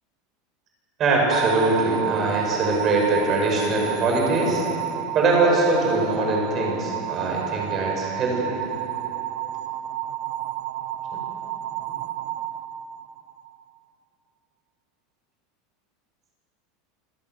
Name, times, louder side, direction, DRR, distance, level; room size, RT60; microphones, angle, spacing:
voice 1, 1.0-4.6 5.1-8.5, right 2 dB, 25° right, 0 dB, 5.8 m, -22 dB
sound 1, 1.3-13.5, right 13 dB, 50° right, 0.9 m, -30 dB
27.0 x 17.0 x 7.8 m, 2.8 s
supercardioid pair, 170°, 0 cm